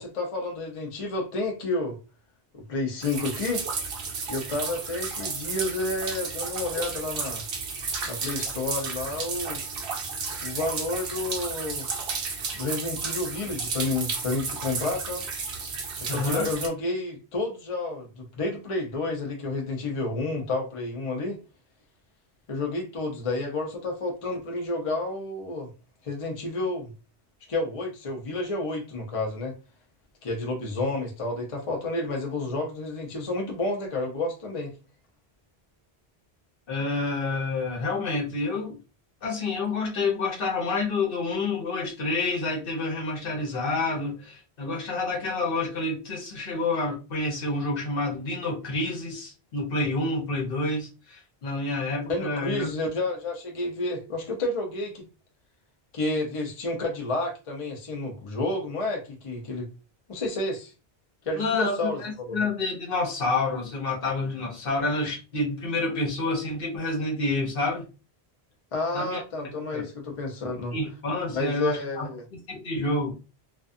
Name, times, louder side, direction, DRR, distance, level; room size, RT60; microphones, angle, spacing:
voice 1, 0.0-2.0 2.5-3.7 4.3-7.4 8.1-9.6 10.4-11.9 12.6-15.3 16.1-21.4 22.5-25.7 26.0-26.9 27.5-29.5 30.2-34.7 52.1-55.1 55.9-59.7 60.1-60.7 61.3-62.5 68.7-70.7 71.3-72.2, left 2 dB, 40° left, 0.6 m, -30 dB
sound 1, 3.0-16.7, right 5 dB, 65° right, 0.8 m, -33 dB
voice 2, 16.1-16.5 36.7-38.8 39.2-52.7 61.4-67.8 68.9-69.2 69.7-69.8 70.7-72.1 72.5-73.1, left 3 dB, 60° left, 1.0 m, -28 dB
2.4 x 2.3 x 2.5 m
omnidirectional pair, 1.1 m